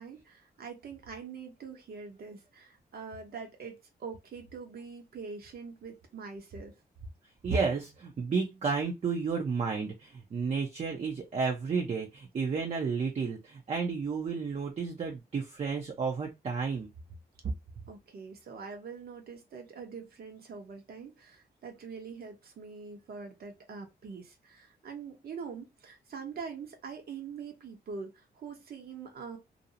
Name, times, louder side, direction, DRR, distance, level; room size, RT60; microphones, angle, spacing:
voice 1, 0.0-6.7 17.9-29.4, right 5 dB, 65° right, 0.9 m, -44 dB
voice 2, 7.4-16.9, right 5 dB, 40° right, 0.5 m, -32 dB
2.5 x 2.0 x 2.6 m
cardioid pair, 105°, 17 cm